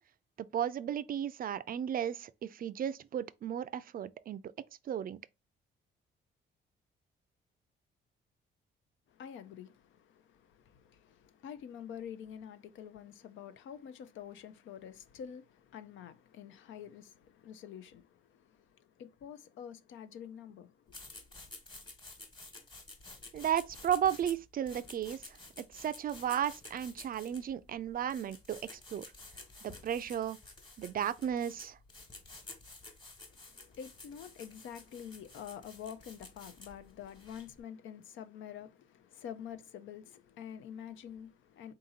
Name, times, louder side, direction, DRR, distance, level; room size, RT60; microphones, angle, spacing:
voice 1, 0.4-4.4 4.9-5.2 23.3-29.0 29.6-30.4 30.8-31.8, right 9 dB, 45° right, 0.4 m, -34 dB
voice 2, 9.1-21.1 33.3-41.7, left 8 dB, 75° left, 0.6 m, -47 dB
sound 1, 20.9-37.6, left 2 dB, 25° left, 1.3 m, -52 dB
3.9 x 2.8 x 3.7 m
cardioid pair, 90°, 20 cm